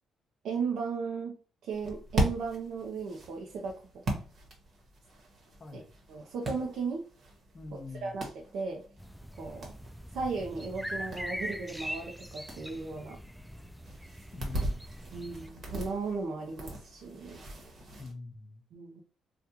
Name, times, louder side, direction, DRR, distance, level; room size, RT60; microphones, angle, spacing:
voice 1, 0.4-1.4 1.6-4.0 5.7-5.8 6.1-7.0 7.7-8.8 9.4-9.7 10.1-13.2 15.1-17.4 18.7-19.0, right 4 dB, 75° right, 0.6 m, -36 dB
sound 1, 1.7-18.1, right 1 dB, 55° right, 1.2 m, -39 dB
voice 2, 7.5-8.2 14.3-14.8 18.0-18.6, left 3 dB, 35° left, 0.7 m, -44 dB
sound 2, 9.0-15.5, equal, ahead, 0.3 m, -42 dB
3.5 x 2.3 x 2.8 m
cardioid pair, 90°, 0 cm